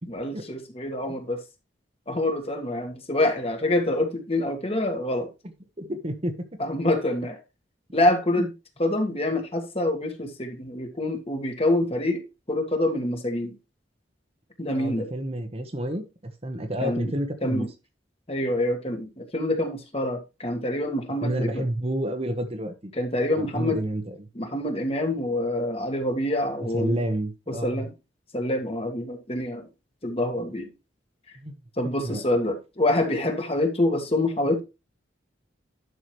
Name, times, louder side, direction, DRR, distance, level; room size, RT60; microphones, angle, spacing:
voice 1, 0.1-1.4 2.1-5.3 6.6-7.4 7.9-8.5 8.8-12.2 12.5-13.6 14.6-15.1 16.8-17.1 17.4-17.7 18.3-21.6 22.9-23.8 24.4-27.0 27.5-27.9 28.3-29.7 30.0-30.7 31.8-34.6, left 1 dB, 30° left, 1.7 m, -26 dB
voice 2, 5.8-6.3 8.4-8.5 14.8-17.7 21.2-22.9 23.4-24.1 26.6-27.9 31.4-31.5 32.0-32.2, right 1 dB, 30° right, 1.2 m, -29 dB
11.0 x 6.1 x 3.2 m
head